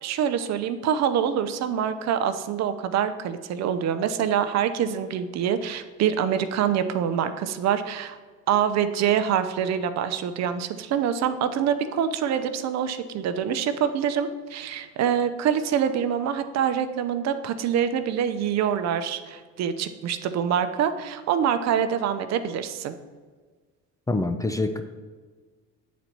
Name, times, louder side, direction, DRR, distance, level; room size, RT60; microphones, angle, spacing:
voice 1, 0.0-8.2 8.5-22.9, right 8 dB, 55° right, 10 dB, 0.6 m, -25 dB
voice 2, 24.1-24.8, left 2 dB, 10° left, 7 dB, 0.4 m, -25 dB
8.5 x 4.1 x 4.4 m, 1.5 s
supercardioid pair, 80°, 32 cm